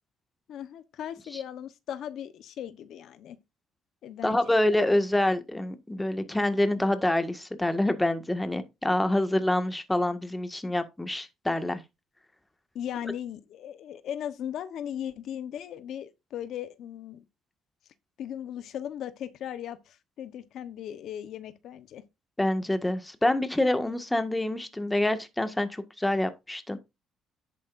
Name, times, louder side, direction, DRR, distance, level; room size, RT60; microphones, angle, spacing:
voice 1, 0.5-3.4 4.0-4.6 12.7-17.2 18.2-22.0, left 10 dB, 70° left, 1.0 m, -38 dB
voice 2, 4.2-11.8 22.4-26.8, left 1 dB, 10° left, 1.7 m, -26 dB
11.0 x 8.4 x 2.6 m
cardioid pair, 100°, 0 cm